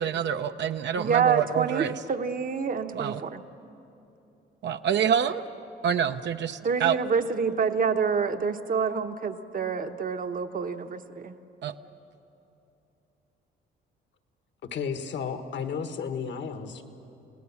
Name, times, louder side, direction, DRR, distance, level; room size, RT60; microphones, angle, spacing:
voice 1, 0.0-1.9 2.9-3.2 4.6-5.4 5.8-7.0 11.6-11.7, right 8 dB, 65° right, 8 dB, 0.8 m, -27 dB
voice 2, 1.0-3.4 6.6-11.4, right 6 dB, 45° right, 8 dB, 1.1 m, -27 dB
voice 3, 14.7-16.8, left 6 dB, 65° left, 8 dB, 1.6 m, -33 dB
30.0 x 18.0 x 7.2 m, 2.9 s
cardioid pair, 90°, 20 cm